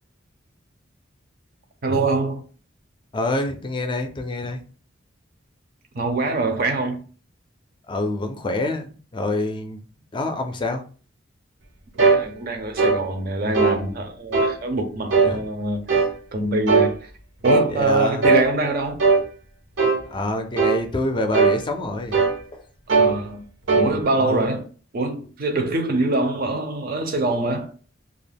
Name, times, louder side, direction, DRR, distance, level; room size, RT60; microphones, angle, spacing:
voice 1, 1.8-2.4 5.9-7.0 12.0-16.0 16.3-17.1 17.4-19.0 22.9-23.4 23.8-24.6 24.9-27.7, right 2 dB, 50° right, 0.5 m, -24 dB
voice 2, 3.1-4.6 7.9-9.8 10.1-10.8 15.2-15.4 17.7-18.3 20.1-22.2 22.5-22.6 24.2-24.5, left 2 dB, 25° left, 0.4 m, -26 dB
sound 1, 12.0-12.2 12.8-13.0 13.5-13.8 14.3-14.6 15.1-15.3 15.9-16.1 16.7-16.9 17.4-17.7 18.2-18.5 19.0-19.2 19.8-20.0 20.6-20.8 21.3-21.6 22.1-22.4 22.9-23.1 23.7-23.9, right 4 dB, 85° right, 0.8 m, -18 dB
2.3 x 2.1 x 3.4 m
head